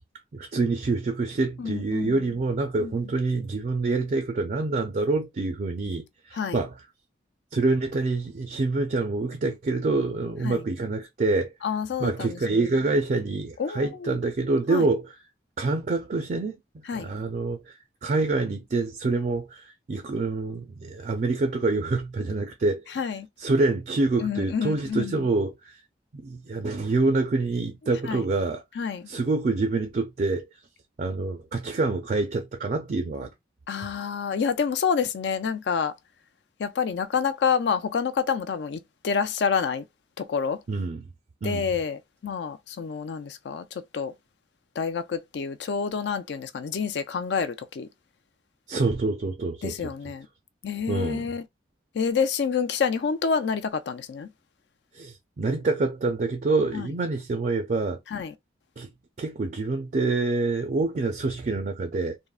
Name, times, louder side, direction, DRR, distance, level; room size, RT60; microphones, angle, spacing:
voice 1, 0.3-6.7 7.5-11.5 12.0-15.1 15.6-16.6 16.9-17.7 18.0-23.0 23.4-25.8 26.1-28.6 29.1-30.4 31.0-33.3 40.7-41.1 41.4-41.7 48.7-49.9 50.9-51.3 54.9-58.0 58.8-58.9 59.2-62.2, right 3 dB, 45° right, 0.4 m, -26 dB
voice 2, 1.6-2.4 2.8-2.9 6.3-6.6 10.4-10.6 11.6-12.6 13.6-14.2 14.7-14.9 16.9-17.1 22.9-23.3 24.2-25.3 28.1-28.2 28.8-29.1 33.7-35.9 36.6-39.8 40.2-40.6 41.4-44.1 44.8-47.9 49.6-50.3 50.6-51.4 51.9-54.3 56.7-56.9 58.1-58.3, left 6 dB, 70° left, 0.4 m, -28 dB
3.5 x 2.1 x 2.3 m
head